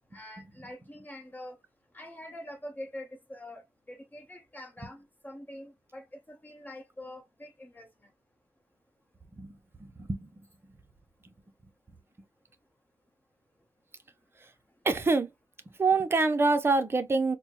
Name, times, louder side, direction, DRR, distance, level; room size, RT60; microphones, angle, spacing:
voice 1, 0.0-1.6 1.9-7.9, left 1 dB, 20° left, 0.9 m, -45 dB
voice 2, 9.3-10.5 14.8-15.3 15.8-17.4, right 3 dB, 25° right, 0.6 m, -26 dB
4.3 x 2.1 x 2.8 m
wide cardioid pair, 120°, 9 cm